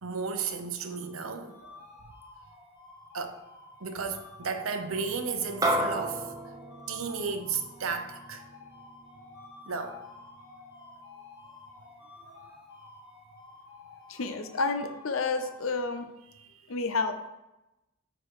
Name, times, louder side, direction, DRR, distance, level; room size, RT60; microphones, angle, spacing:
voice 1, 0.0-1.9 3.1-3.4 3.8-6.3 6.9-8.4 9.7-10.0 12.2-12.6 16.3-16.6, right 5 dB, 80° right, 0.8 m, -34 dB
sound 1, 0.7-16.0, left 4 dB, 45° left, 2.5 m, -51 dB
sound 2, 5.6-10.2, right 1 dB, 15° right, 0.8 m, -33 dB
voice 2, 14.1-16.1 16.7-17.1, left 3 dB, 75° left, 0.7 m, -30 dB
9.0 x 3.8 x 4.8 m
head